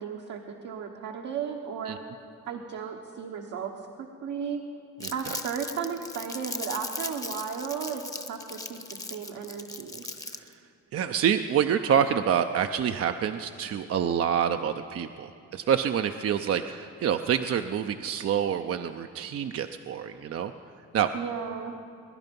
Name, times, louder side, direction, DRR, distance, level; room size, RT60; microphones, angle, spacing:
voice 1, 0.0-2.0 2.5-3.7 4.2-4.6 5.1-8.0 8.3-8.8 9.1-10.0 21.1-21.7, right 7 dB, 75° right, 1 dB, 1.2 m, -34 dB
Crumpling crinkling, 5.0-10.5, left 2 dB, 10° left, 0.9 m, -38 dB
voice 2, 10.9-20.5 20.9-21.1, right 8 dB, 50° right, 7 dB, 0.6 m, -27 dB
22.0 x 10.5 x 5.3 m, 2.6 s
cardioid pair, 90°, 30 cm